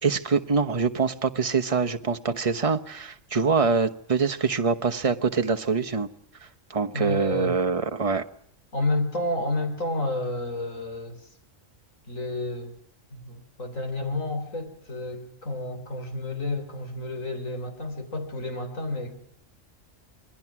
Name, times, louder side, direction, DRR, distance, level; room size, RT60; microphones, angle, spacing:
voice 1, 0.0-6.1 6.7-8.2, right 5 dB, 30° right, 1.1 m, -24 dB
voice 2, 6.9-7.5 8.7-11.2 12.1-12.8 13.1-19.1, left 2 dB, 85° left, 4.1 m, -30 dB
27.5 x 20.0 x 6.0 m
omnidirectional pair, 1.3 m